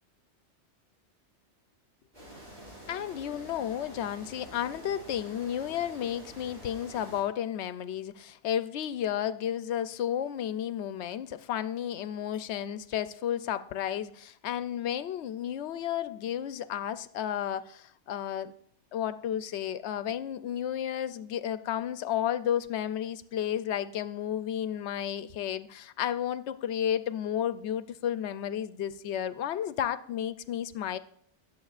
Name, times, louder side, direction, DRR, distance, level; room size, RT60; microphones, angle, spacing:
sound 1, 2.1-7.2, equal, 50° right, 6.0 m, -48 dB
voice 1, 2.9-18.5 18.9-31.0, left 10 dB, 75° left, 0.8 m, -32 dB
20.5 x 7.8 x 2.4 m
omnidirectional pair, 1.2 m